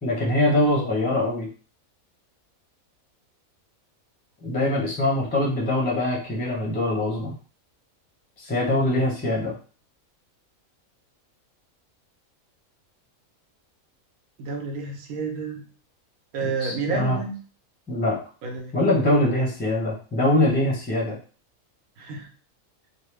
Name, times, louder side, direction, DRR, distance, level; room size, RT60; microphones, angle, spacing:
voice 1, 0.0-1.5 4.4-7.4 8.4-9.5 16.4-17.2 17.9-18.2 18.7-21.2, left 1 dB, 10° left, -3 dB, 0.5 m, -23 dB
voice 2, 14.4-15.6 16.3-17.4 18.4-18.7 22.0-22.3, right 4 dB, 80° right, 3 dB, 1.1 m, -30 dB
3.0 x 2.1 x 3.2 m, 0.39 s
omnidirectional pair, 1.5 m